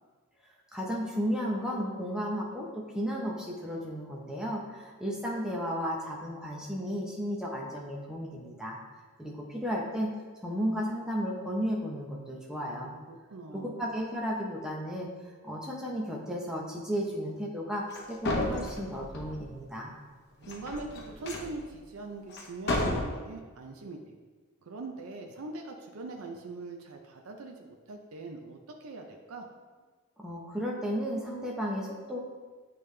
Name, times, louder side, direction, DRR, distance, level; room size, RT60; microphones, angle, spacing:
voice 1, 0.7-8.8 9.2-10.1 10.4-12.9 13.5-15.1 15.4-19.9 30.2-32.2, equal, 5° right, -3 dB, 0.8 m, -34 dB
voice 2, 12.5-13.8 20.5-24.0 24.6-29.5, right 3 dB, 80° right, 2 dB, 0.5 m, -42 dB
sound 1, 17.9-18.0 18.3-19.5 20.4-21.5 22.3-22.4 22.7-23.0, left 2 dB, 50° left, 0.8 m, -32 dB
8.5 x 3.4 x 3.3 m, 1.4 s
head